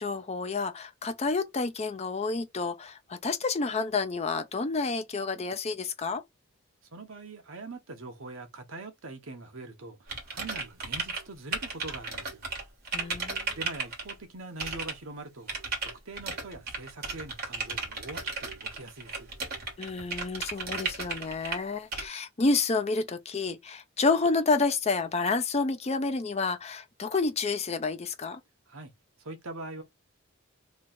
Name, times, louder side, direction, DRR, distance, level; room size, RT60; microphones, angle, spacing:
voice 1, 0.0-6.2 12.9-13.4 19.8-28.4, left 3 dB, 30° left, 0.5 m, -29 dB
voice 2, 6.9-12.4 13.5-15.5 15.8-19.3 28.7-28.9 29.2-29.8, right 2 dB, 70° right, 1.0 m, -43 dB
sound 1, 10.1-11.2 11.5-14.1 14.6-14.9 15.5-21.6 21.9-22.0, right 4 dB, 45° right, 1.6 m, -34 dB
3.1 x 2.4 x 4.1 m
head